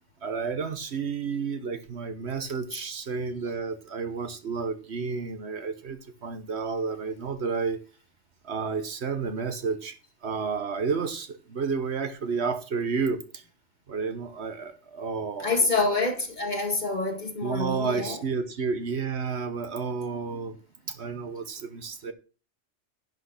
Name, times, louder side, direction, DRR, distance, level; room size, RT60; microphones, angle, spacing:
voice 1, 0.2-7.8 8.4-9.9 10.2-13.4 13.9-15.7 17.4-20.6 20.9-22.1, right 5 dB, 65° right, 1.3 m, -31 dB
voice 2, 15.4-18.2, left 3 dB, 40° left, 1.9 m, -27 dB
10.5 x 6.4 x 5.9 m
omnidirectional pair, 1.2 m